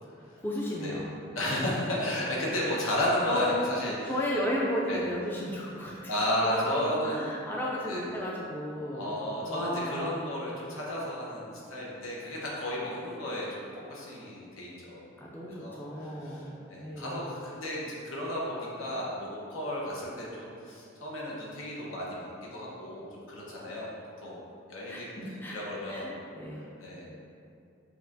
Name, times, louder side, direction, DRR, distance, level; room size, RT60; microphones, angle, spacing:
voice 1, 0.4-1.3 3.2-3.5 4.0-6.1 6.4-10.2 15.2-17.2 24.9-25.5 25.9-26.7, left 1 dB, 10° left, -5 dB, 0.4 m, -34 dB
voice 2, 1.3-4.1 4.9-5.0 6.1-7.2 7.9-8.0 8.9-15.0 15.5-23.9 24.2-24.4 24.7-26.1 26.5-27.0, left 1 dB, 90° left, -5 dB, 1.0 m, -33 dB
6.6 x 2.4 x 2.5 m, 2.6 s
head